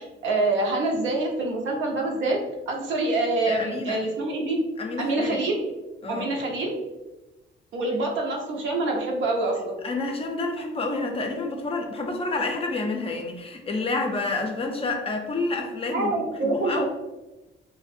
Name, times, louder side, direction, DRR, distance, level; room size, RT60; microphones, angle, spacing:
voice 1, 0.0-2.4 2.7-4.6 5.0-5.6 6.1-6.7 7.7-9.8 15.9-16.8, right 2 dB, 75° right, 0 dB, 0.6 m, -26 dB
voice 2, 3.5-4.0 4.8-5.4 6.0-6.3 9.8-16.1 16.4-16.8, left 3 dB, 30° left, 3 dB, 0.4 m, -29 dB
2.4 x 2.1 x 2.6 m, 1.1 s
cardioid pair, 90°, 20 cm